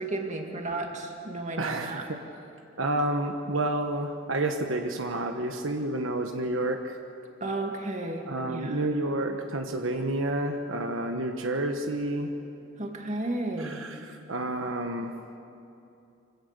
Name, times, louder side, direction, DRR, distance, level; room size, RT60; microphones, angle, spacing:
voice 1, 0.0-2.0 7.4-8.9 12.8-13.8, right 2 dB, 35° right, 3 dB, 2.1 m, -33 dB
voice 2, 1.6-2.1 2.8-6.9 8.3-12.3 13.6-15.1, right 1 dB, 80° right, 4 dB, 1.2 m, -30 dB
25.0 x 16.5 x 6.7 m, 2.7 s
head